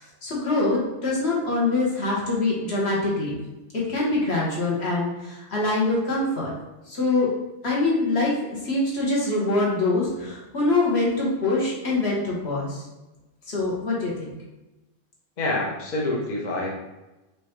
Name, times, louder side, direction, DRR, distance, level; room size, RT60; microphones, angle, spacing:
voice 1, 0.0-3.4 3.9-6.5 6.9-7.3 7.6-8.3 8.6-12.8 13.5-14.3, left 2 dB, 60° left, -5 dB, 1.4 m, -24 dB
voice 2, 15.4-16.8, left 2 dB, 45° left, -3 dB, 0.8 m, -27 dB
4.3 x 3.2 x 3.1 m, 1.1 s
omnidirectional pair, 1.2 m